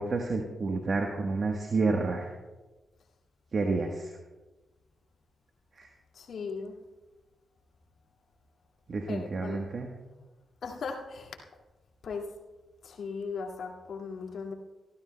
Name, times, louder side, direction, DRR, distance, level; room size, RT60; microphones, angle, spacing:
voice 1, 0.0-2.3 3.5-4.2 5.7-5.9 8.9-9.9, right 3 dB, 55° right, 3 dB, 1.2 m, -30 dB
voice 2, 6.1-6.8 9.1-9.6 10.6-11.4 12.0-12.3 12.8-14.5, left 5 dB, 65° left, 1 dB, 2.1 m, -37 dB
25.0 x 13.0 x 2.2 m, 1.2 s
hypercardioid pair, 40°, 0 cm